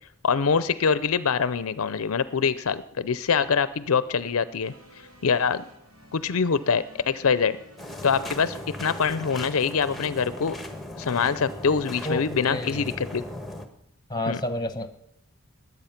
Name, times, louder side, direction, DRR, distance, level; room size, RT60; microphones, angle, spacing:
voice 1, 0.2-4.7 5.2-5.6 6.1-7.6 8.0-10.6 11.0-13.2 14.3-14.4, left 6 dB, 70° left, 15 dB, 0.6 m, -24 dB
sound 1, 4.6-9.8, equal, 75° right, 3.1 m, -51 dB
sound 2, 7.8-13.7, left 1 dB, ahead, 1.3 m, -38 dB
voice 2, 12.0-12.9 14.1-14.9, left 1 dB, 20° left, 10 dB, 1.1 m, -30 dB
20.5 x 8.3 x 5.8 m, 0.73 s
head